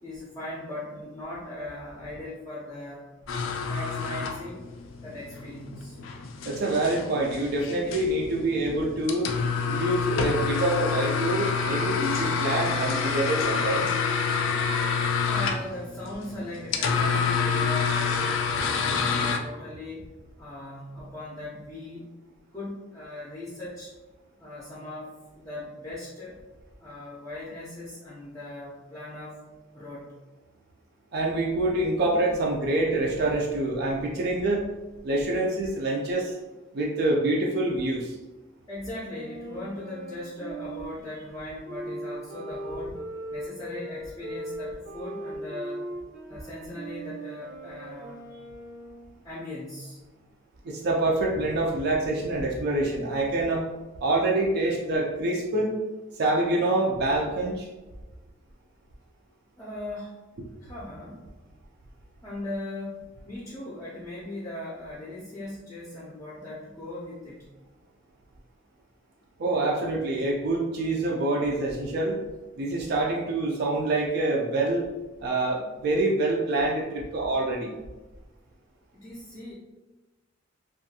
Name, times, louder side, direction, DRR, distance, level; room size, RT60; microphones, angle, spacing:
voice 1, 0.0-3.1 3.6-4.7 5.0-6.0 15.2-20.1 20.4-22.1 22.5-23.9 24.4-26.4 26.8-29.4 29.7-30.2 38.7-43.0 43.3-45.9 46.3-48.3 49.2-50.0 59.6-60.2 60.6-61.3 62.2-67.5 78.9-79.5, left 1 dB, 15° left, -8 dB, 0.5 m, -39 dB
sound 1, 3.3-19.4, left 5 dB, 80° left, 0.3 m, -28 dB
voice 2, 6.4-9.3 9.6-13.9 31.1-34.7 35.0-36.4 36.7-38.2 50.6-53.7 54.0-55.7 56.2-57.7 69.4-72.2 72.6-74.9 75.2-77.7, right 2 dB, 55° right, -1 dB, 0.4 m, -26 dB
Wind instrument woodwind instrument, 39.1-49.1, right 1 dB, 80° right, 0.8 m, -39 dB
2.6 x 2.3 x 2.7 m, 1.1 s
head